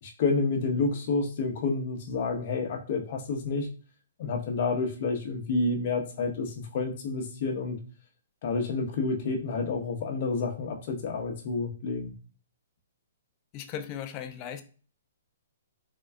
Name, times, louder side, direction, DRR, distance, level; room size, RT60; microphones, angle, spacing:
voice 1, 0.0-3.7 4.2-7.8 8.4-12.1, left 3 dB, 50° left, 3 dB, 0.9 m, -29 dB
voice 2, 13.5-14.6, left 9 dB, 30° left, 8 dB, 0.4 m, -37 dB
3.7 x 2.3 x 3.4 m, 0.39 s
hypercardioid pair, 145°, 0 cm